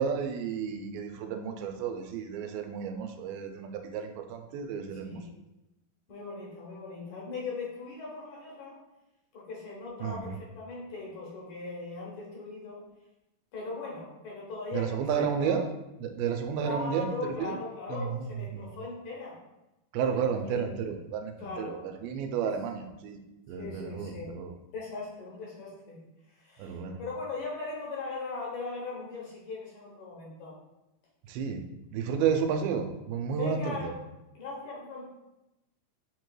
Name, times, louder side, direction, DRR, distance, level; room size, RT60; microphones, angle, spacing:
voice 1, 0.0-5.3 10.0-10.4 14.7-15.7 16.0-17.1 17.4-17.6 17.9-18.3 18.5-18.6 19.9-23.2 23.5-24.5 26.6-27.0 31.2-31.6 31.9-33.9, right 7 dB, 90° right, 5 dB, 2.3 m, -32 dB
voice 2, 6.1-8.8 9.3-12.8 13.5-15.6 16.6-19.4 20.1-20.6 21.4-21.8 23.6-24.3 24.7-26.0 26.3-30.5 33.3-34.0 34.4-35.1, left 3 dB, 65° left, -4 dB, 2.0 m, -39 dB
7.7 x 3.1 x 2.2 m, 0.94 s
omnidirectional pair, 4.1 m